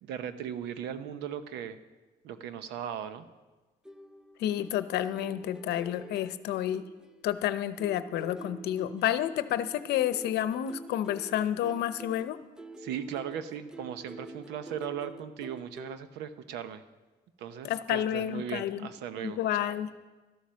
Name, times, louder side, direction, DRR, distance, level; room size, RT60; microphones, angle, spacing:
voice 1, 0.0-1.8 2.2-3.3 12.8-16.8 17.4-19.8, right 9 dB, 85° right, 11 dB, 0.9 m, -38 dB
sound 1, 3.9-7.5 7.8-16.0, right 2 dB, 5° right, 0.5 m, -48 dB
voice 2, 4.4-6.8 7.2-12.4 17.6-18.9 19.2-19.9, left 11 dB, 75° left, 13 dB, 0.8 m, -30 dB
13.5 x 11.5 x 6.4 m, 1.2 s
cardioid pair, 110°, 17 cm